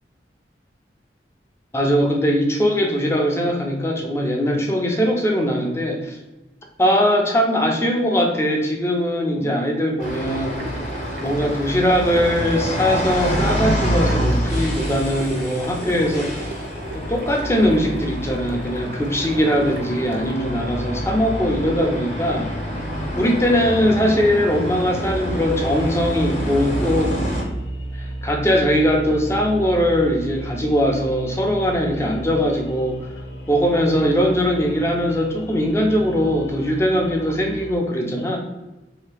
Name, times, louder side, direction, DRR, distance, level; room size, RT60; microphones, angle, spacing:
voice 1, 1.7-6.2 6.8-10.6 11.2-16.5 16.9-22.5 23.2-27.2 28.0-33.1 33.5-38.4, equal, 15° left, 1 dB, 0.5 m, -20 dB
sound 1, 10.0-27.4, equal, 35° left, 0.9 m, -27 dB
sound 2, 10.0-20.3, right 3 dB, 50° right, 0.5 m, -38 dB
sound 3, 25.0-37.8, right 1 dB, 75° left, 0.5 m, -34 dB
3.2 x 2.8 x 3.4 m, 1.1 s
head